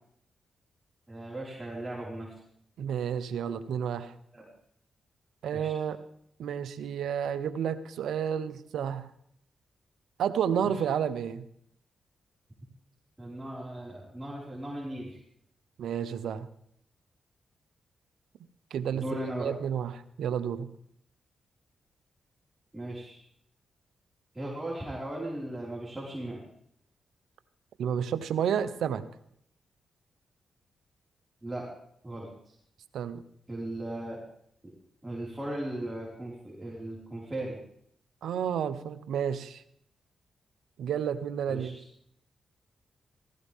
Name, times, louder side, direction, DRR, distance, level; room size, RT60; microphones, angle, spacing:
voice 1, 1.1-2.3 4.3-4.4 5.5-5.7 10.6-10.7 13.2-15.2 18.9-19.5 22.7-23.2 24.3-26.4 31.4-31.7 32.0-32.5 33.5-34.2 35.0-37.6 41.5-41.8, right 1 dB, 20° right, -5 dB, 5.3 m, -37 dB
voice 2, 2.8-4.1 5.4-6.0 6.4-9.1 10.2-11.4 15.8-16.5 18.7-19.1 19.4-20.7 27.8-29.0 32.9-33.2 38.2-39.6 40.8-41.8, right 8 dB, 80° right, 13 dB, 0.9 m, -31 dB
17.0 x 15.5 x 3.7 m, 0.69 s
supercardioid pair, 50°, 0 cm